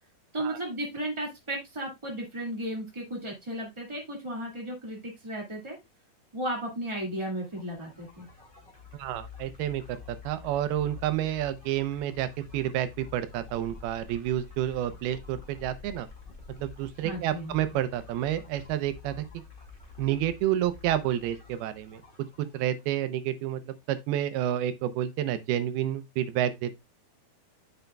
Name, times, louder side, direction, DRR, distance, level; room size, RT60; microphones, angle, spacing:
voice 1, 0.3-5.7 6.3-8.3 17.0-17.5, right 1 dB, 30° right, 0.5 m, -34 dB
sound 1, 7.4-23.0, left 5 dB, 25° left, 1.1 m, -49 dB
voice 2, 8.9-12.3 12.5-16.1 16.6-19.2 20.0-22.0 22.4-26.7, right 12 dB, 85° right, 2.6 m, -29 dB
9.1 x 7.0 x 2.2 m
omnidirectional pair, 4.4 m